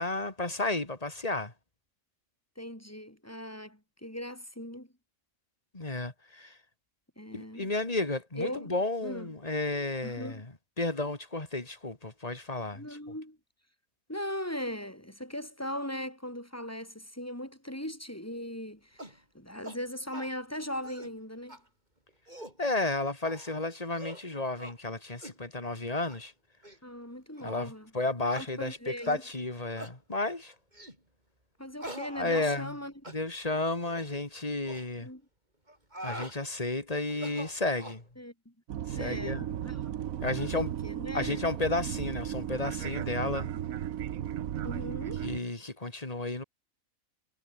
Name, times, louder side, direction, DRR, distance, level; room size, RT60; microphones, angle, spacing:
voice 1, 0.0-1.5 5.7-6.6 7.3-10.5 10.8-12.9 22.6-26.3 27.4-30.5 32.1-32.8 33.1-35.1 36.0-38.0 38.9-39.5 40.2-40.7 41.1-43.5 45.2-46.4, left 2 dB, 25° left, 3.1 m, -32 dB
voice 2, 2.6-4.9 7.2-7.7 8.3-8.7 9.0-9.3 10.0-10.4 12.7-13.4 14.1-21.6 26.8-27.9 28.4-29.2 31.6-32.9 35.0-35.2 38.2-38.5 38.9-40.0 40.4-41.5 44.6-45.3, equal, 10° left, 5.0 m, -39 dB
sound 1, 19.0-19.2 19.6-19.8 20.1-20.3 20.7-21.1 21.5-21.6 22.1-22.6 23.2-23.5 23.9-24.2 24.6-24.8 25.2-25.4 26.0-26.2 26.6-26.8 27.4-27.5 28.3-28.5 29.0-29.2 29.8-30.0 30.7-31.0 31.8-32.8 33.0-33.2 33.8-34.1 34.6-34.8 35.7-36.4 37.1-38.0, right 1 dB, 30° right, 7.8 m, -44 dB
sound 2, 38.7-45.4, right 11 dB, 75° right, 1.3 m, -35 dB
omnidirectional pair, 1.5 m